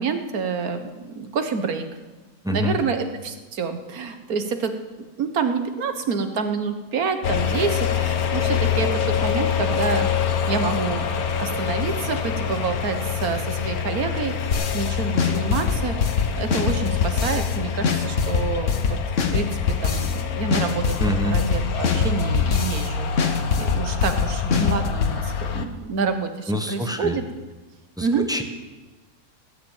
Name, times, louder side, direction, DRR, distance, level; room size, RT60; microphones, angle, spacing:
voice 1, 0.0-1.9 2.5-4.7 5.2-10.1 10.5-19.0 19.3-27.2 28.0-28.3, right 5 dB, 70° right, 7 dB, 1.7 m, -28 dB
voice 2, 2.4-2.8 21.0-21.4 26.5-27.2 28.0-28.4, equal, 5° right, 5 dB, 1.1 m, -25 dB
sound 1, 7.2-25.7, left 7 dB, 70° left, 1.5 m, -26 dB
sound 2, 14.5-14.9 15.2-17.6 17.8-20.2 20.5-22.9 23.2-25.2, left 5 dB, 55° left, 1.5 m, -23 dB
19.0 x 7.2 x 9.0 m, 1.2 s
omnidirectional pair, 1.6 m